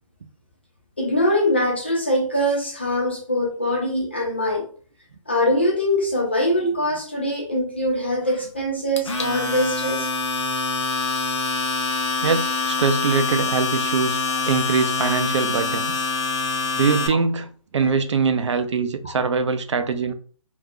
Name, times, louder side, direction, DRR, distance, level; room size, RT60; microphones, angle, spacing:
voice 1, 1.0-4.7 5.3-10.1 17.1-17.2 17.8-17.9 19.0-19.1, left 1 dB, 20° left, 0.3 m, -23 dB
Domestic sounds home sounds, 9.0-17.1, left 4 dB, 55° left, 0.7 m, -25 dB
voice 2, 12.2-14.2 14.5-15.9 16.7-20.1, right 5 dB, 55° right, 0.4 m, -22 dB
2.5 x 2.2 x 3.5 m
hypercardioid pair, 170°, 18 cm